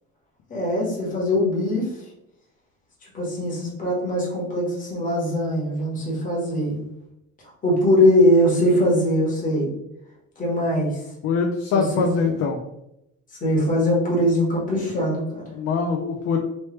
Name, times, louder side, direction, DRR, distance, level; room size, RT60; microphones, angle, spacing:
voice 1, 0.5-1.9 3.1-6.8 7.6-9.7 10.4-11.0 11.7-11.9 12.2-12.4 13.4-15.6, left 1 dB, 25° left, -4 dB, 1.3 m, -21 dB
voice 2, 11.2-12.6 15.6-16.4, left 5 dB, 45° left, 3 dB, 0.4 m, -23 dB
3.1 x 3.1 x 3.1 m, 0.85 s
cardioid pair, 145°, 31 cm